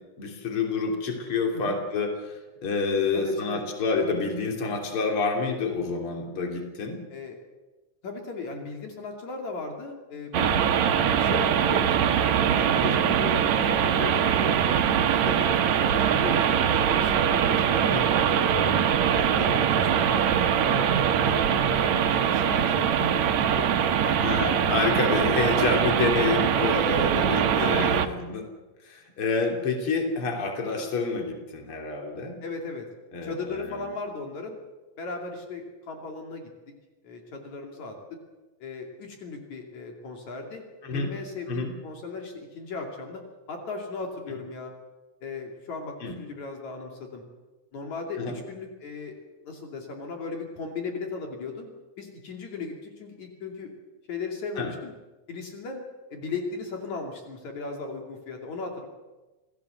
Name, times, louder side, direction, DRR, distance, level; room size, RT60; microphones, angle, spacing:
voice 1, 0.2-7.0 17.8-18.1 24.2-28.4 28.8-32.4 33.1-33.8 40.8-41.1 41.5-41.7 46.0-46.2 48.2-48.4 54.6-54.7, left 4 dB, 45° left, 3 dB, 3.9 m, -28 dB
voice 2, 3.1-3.6 7.1-7.4 8.0-10.8 11.1-12.3 12.5-18.8 19.1-20.2 20.6-21.0 21.2-23.7 24.0-24.8 25.1-25.6 26.9-28.1 32.4-32.9 33.2-34.6 35.0-36.5 37.0-38.2 38.6-40.6 40.9-43.2 43.5-44.7 45.2-47.2 47.7-51.7 52.0-53.7 54.1-54.9 55.3-55.8 56.1-58.9, left 4 dB, 65° left, 2 dB, 4.0 m, -37 dB
sound 1, 10.3-28.1, right 8 dB, 70° right, 2.4 m, -23 dB
28.0 x 17.5 x 8.0 m, 1.2 s
omnidirectional pair, 3.5 m